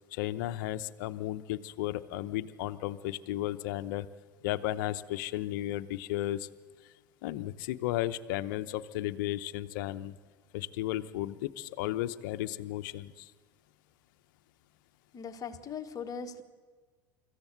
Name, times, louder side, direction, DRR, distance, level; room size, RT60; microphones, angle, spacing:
voice 1, 0.1-4.1 4.4-6.5 7.2-10.1 10.5-13.3, left 14 dB, 70° left, 11 dB, 0.8 m, -34 dB
voice 2, 15.1-16.4, left 6 dB, 35° left, 7 dB, 1.4 m, -39 dB
25.0 x 15.0 x 8.1 m, 1.5 s
hypercardioid pair, 85°, 11 cm